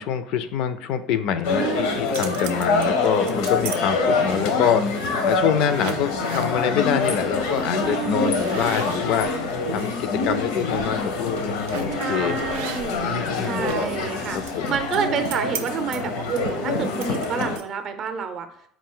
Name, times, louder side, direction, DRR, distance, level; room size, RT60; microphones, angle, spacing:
voice 1, 0.0-12.4 13.1-13.6 14.3-14.8, left 8 dB, 55° left, 11 dB, 0.3 m, -25 dB
sound 1, 1.4-17.6, left 3 dB, 85° left, 0.7 m, -25 dB
voice 2, 1.5-2.0 7.8-8.4 11.9-14.4 14.7-18.5, right 6 dB, 40° right, 7 dB, 0.5 m, -29 dB
sound 2, 1.9-3.8 4.2-4.7 5.3-5.4 5.7-6.5 7.0-7.2 7.5-7.7 8.2-9.9 10.4-10.6 11.7-12.0 12.5-13.1 13.4-17.9, right 9 dB, 90° right, 0.4 m, -38 dB
4.2 x 2.5 x 3.7 m, 0.66 s
cardioid pair, 155°, 0 cm